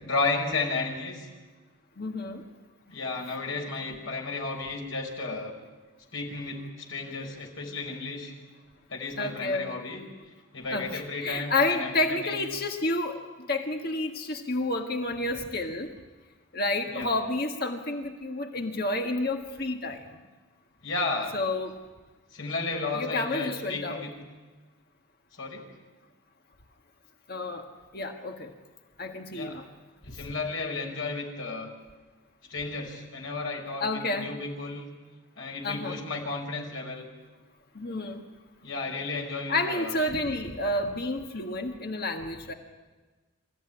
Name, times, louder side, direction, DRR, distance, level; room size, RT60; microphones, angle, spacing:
voice 1, 0.0-1.3 2.9-5.5 6.1-8.3 8.9-10.1 10.5-12.5 16.9-17.1 20.8-21.4 22.3-24.1 25.3-25.7 29.3-29.6 30.0-31.7 32.5-34.9 35.4-37.1 38.6-40.0, left 3 dB, 75° left, 0 dB, 5.4 m, -33 dB
voice 2, 2.0-2.4 9.2-9.7 10.7-13.2 13.5-15.9 16.5-20.0 21.3-21.7 22.9-24.0 27.3-27.6 27.9-28.5 29.0-29.6 33.8-34.3 35.6-36.0 37.7-38.2 39.5-42.5, left 2 dB, 45° left, 4 dB, 1.6 m, -30 dB
26.5 x 15.5 x 9.9 m, 1.3 s
head